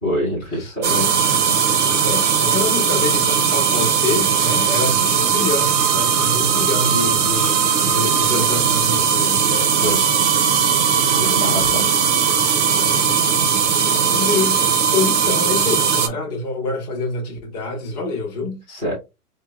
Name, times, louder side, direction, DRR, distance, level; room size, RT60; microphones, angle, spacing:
voice 1, 0.0-1.1 9.8-10.0 11.2-11.8 18.7-18.9, equal, 5° left, 0.5 m, -25 dB
voice 2, 0.5-1.2 2.0-10.1 11.1-11.4 12.8-13.1 14.1-18.6, left 3 dB, 25° left, 0.9 m, -26 dB
sound 1, 0.8-16.1, right 7 dB, 50° right, 0.5 m, -18 dB
4.4 x 2.1 x 2.3 m
hypercardioid pair, 160°, 45 cm